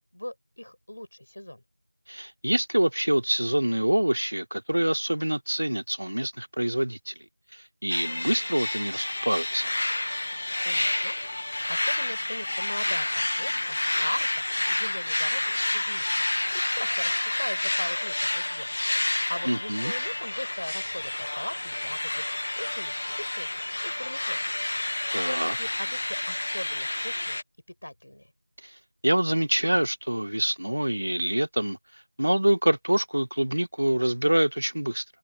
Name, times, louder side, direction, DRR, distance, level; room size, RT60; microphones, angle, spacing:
voice 1, 0.1-1.6 10.6-16.2 16.5-18.7 18.9-22.2 22.5-23.5 23.8-24.4 25.0-27.4 27.7-28.3, left 1 dB, 70° left, 8.0 m, -39 dB
voice 2, 2.1-7.2 7.5-9.7 19.4-19.9 25.1-25.5 28.6-28.8 29.0-35.0, right 1 dB, 75° right, 1.3 m, -26 dB
sound 1, 7.9-27.4, left 1 dB, 40° left, 0.7 m, -29 dB
open air
figure-of-eight pair, 175°, 0 cm